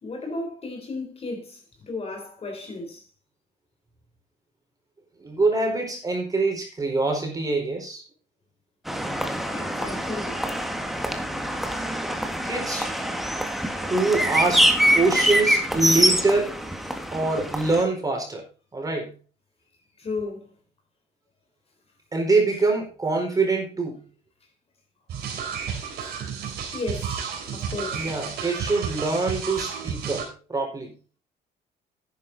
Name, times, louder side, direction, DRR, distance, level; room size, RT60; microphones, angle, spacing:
voice 1, 0.0-3.0 9.5-10.4 20.0-20.5 26.7-27.2 27.5-28.1, left 3 dB, 35° left, 3.9 m, -34 dB
voice 2, 5.2-8.0 12.4-12.9 13.7-16.6 17.1-18.4 18.7-19.1 22.1-24.0 27.9-30.9, right 3 dB, 20° right, 4.5 m, -24 dB
sound 1, 8.9-17.8, equal, ahead, 1.7 m, -24 dB
sound 2, 25.1-30.3, right 7 dB, 70° right, 4.0 m, -32 dB
11.0 x 9.5 x 4.1 m
cardioid pair, 110°, 17 cm